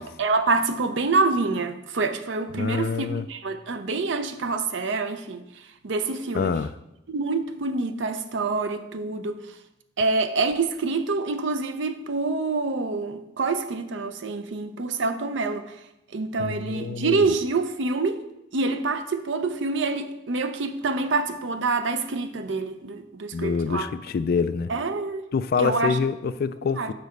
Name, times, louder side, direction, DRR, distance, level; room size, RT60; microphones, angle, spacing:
voice 1, 0.0-5.4 5.8-6.5 7.1-9.4 10.0-15.6 16.1-18.2 18.5-23.9 24.7-25.3 25.6-26.0 26.8-26.9, right 3 dB, 70° right, 9 dB, 0.6 m, -26 dB
voice 2, 2.6-3.3 6.3-6.7 16.4-17.2 23.3-24.7 25.3-26.9, left 5 dB, 55° left, 12 dB, 0.3 m, -26 dB
6.9 x 4.1 x 6.5 m, 0.87 s
head